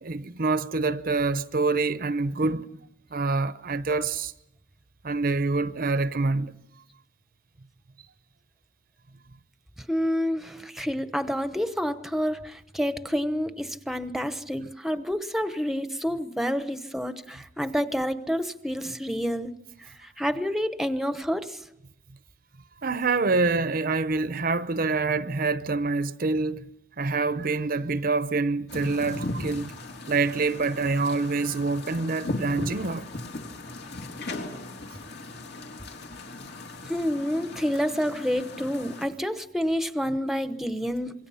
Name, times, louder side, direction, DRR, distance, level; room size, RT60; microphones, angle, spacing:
voice 1, 0.0-2.7 3.1-4.3 5.0-6.5 14.6-14.7 22.8-26.6 27.0-29.7 30.1-33.1, right 3 dB, 50° right, 0.8 m, -26 dB
voice 2, 9.9-19.5 20.0-21.6 36.9-41.3, equal, ahead, 1.0 m, -28 dB
sound 1, 28.7-39.1, left 2 dB, 65° left, 3.2 m, -37 dB
27.0 x 23.0 x 5.7 m
head